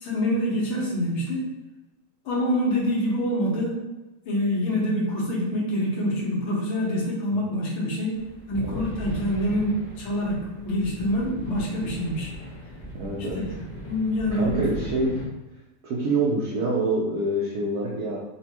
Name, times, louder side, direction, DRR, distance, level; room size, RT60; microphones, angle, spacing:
voice 1, 0.0-1.5 2.3-3.8 4.3-8.2 8.5-12.3 13.4-13.5 13.9-14.7, equal, 75° left, -4 dB, 1.7 m, -26 dB
sound 1, 8.1-15.2, equal, 50° left, 0.5 m, -38 dB
voice 2, 12.9-13.4 14.3-15.2 15.8-18.2, right 2 dB, 80° right, -4 dB, 0.8 m, -26 dB
4.1 x 2.2 x 2.8 m, 1.1 s
omnidirectional pair, 2.3 m